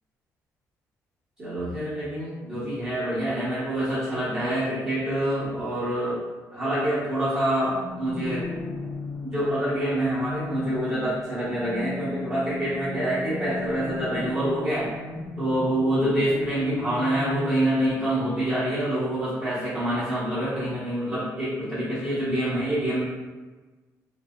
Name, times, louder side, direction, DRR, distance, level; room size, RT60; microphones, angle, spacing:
voice 1, 1.4-6.2 6.5-8.5 9.2-14.9 15.4-23.0, right 1 dB, 30° right, -15 dB, 1.2 m, -26 dB
sound 1, 7.6-17.3, left 3 dB, 35° left, 0.8 m, -36 dB
4.0 x 2.1 x 2.3 m, 1.3 s
cardioid pair, 165°, 6 cm